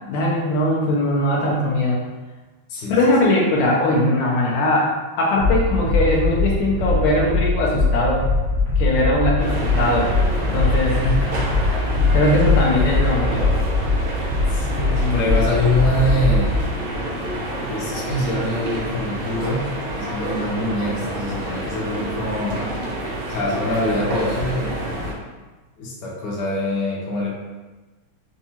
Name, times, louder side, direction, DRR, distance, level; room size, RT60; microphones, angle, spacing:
voice 1, 0.1-2.0 2.9-4.9 5.2-8.2 8.8-10.1 10.5-11.0 12.1-13.5 14.6-15.3, left 1 dB, 80° left, -3 dB, 1.5 m, -20 dB
voice 2, 2.7-3.3 10.9-11.5 14.5-16.5 17.6-19.7 20.0-22.8 23.3-25.1 25.8-27.3, left 1 dB, 60° left, -4 dB, 1.3 m, -24 dB
sound 1, 5.4-16.6, left 3 dB, 35° right, 0.9 m, -21 dB
sound 2, 9.4-25.1, right 1 dB, 75° right, 1.7 m, -28 dB
4.4 x 2.6 x 2.8 m, 1.2 s
omnidirectional pair, 2.4 m